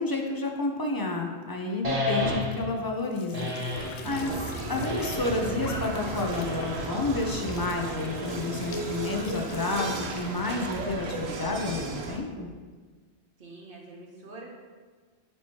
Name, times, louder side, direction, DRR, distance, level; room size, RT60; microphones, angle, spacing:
voice 1, 0.0-4.4 4.7-12.5, left 3 dB, 25° left, 1 dB, 0.5 m, -30 dB
sound 1, 1.8-2.8 3.3-4.0 4.8-5.6 6.3-6.9 7.8-8.5, left 1 dB, 35° right, 1.1 m, -32 dB
Squeak / Sink (filling or washing) / Trickle dribble, 2.9-10.8, left 4 dB, 70° left, 0.9 m, -45 dB
voice 2, 3.9-4.5 13.4-14.5, right 3 dB, 55° right, -2 dB, 1.3 m, -46 dB
sound 2, 4.0-12.2, right 3 dB, 70° right, 1.0 m, -34 dB
8.7 x 3.0 x 4.4 m, 1.5 s
omnidirectional pair, 1.1 m